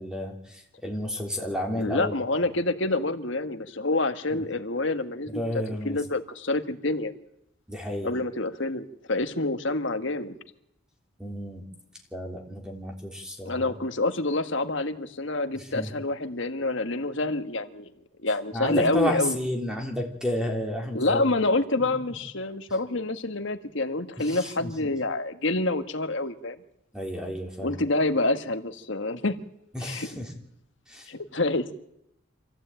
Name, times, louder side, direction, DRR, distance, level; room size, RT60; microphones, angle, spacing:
voice 1, 0.0-2.1 4.3-4.4 5.3-6.0 7.7-8.1 11.2-11.7 12.1-13.8 15.5-15.9 18.5-21.2 21.8-22.1 24.2-24.7 26.9-27.7 29.7-30.3 30.9-31.1, left 1 dB, 5° right, 2 dB, 3.3 m, -31 dB
voice 2, 1.7-7.1 8.0-10.3 13.4-17.9 18.2-19.4 20.9-26.6 27.6-29.4 29.8-30.1 31.1-31.7, left 2 dB, 60° left, 9 dB, 1.6 m, -27 dB
26.0 x 15.5 x 9.0 m, 0.79 s
head